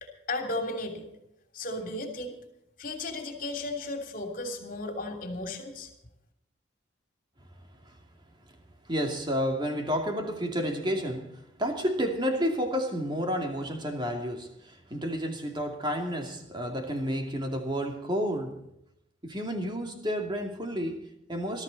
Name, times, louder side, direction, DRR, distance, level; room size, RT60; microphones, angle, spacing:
voice 1, 0.0-1.1 1.5-2.3 2.8-5.9, left 2 dB, 45° left, 3.1 m, -35 dB
voice 2, 8.9-18.7 19.2-21.6, equal, 25° right, 2.5 m, -31 dB
21.0 x 13.5 x 4.1 m
head